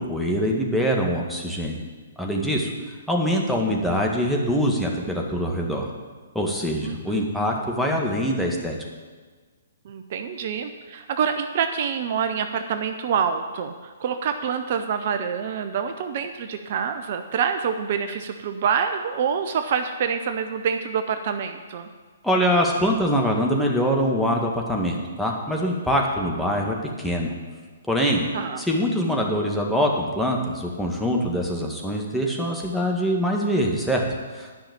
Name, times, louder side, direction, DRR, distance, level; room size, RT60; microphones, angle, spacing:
voice 1, 0.0-1.8 2.2-2.7 3.1-5.9 6.3-8.8 22.2-27.3 27.9-28.3 28.6-34.0 34.4-34.5, equal, ahead, -2 dB, 1.7 m, -24 dB
voice 2, 6.8-7.2 9.8-13.7 14.0-21.9 28.3-28.7, right 7 dB, 50° right, 7 dB, 0.7 m, -26 dB
10.5 x 5.8 x 8.7 m, 1.4 s
figure-of-eight pair, 125°, 0 cm